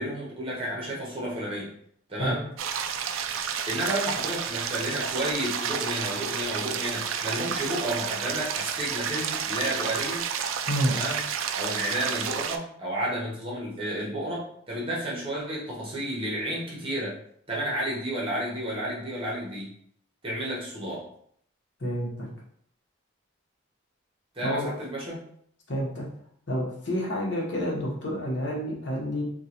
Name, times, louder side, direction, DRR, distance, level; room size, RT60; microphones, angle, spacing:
voice 1, 0.0-1.7 2.1-2.5 3.3-10.3 10.8-11.3 11.5-17.1 17.5-19.7 20.2-21.1 24.3-25.2, right 1 dB, 25° right, -5 dB, 0.9 m, -31 dB
sound 1, 2.6-12.6, right 7 dB, 80° right, 0.3 m, -31 dB
voice 2, 21.8-22.3 24.4-24.7 25.7-26.1 26.5-29.2, equal, 60° left, -4 dB, 1.0 m, -29 dB
3.7 x 2.3 x 2.9 m, 0.65 s
head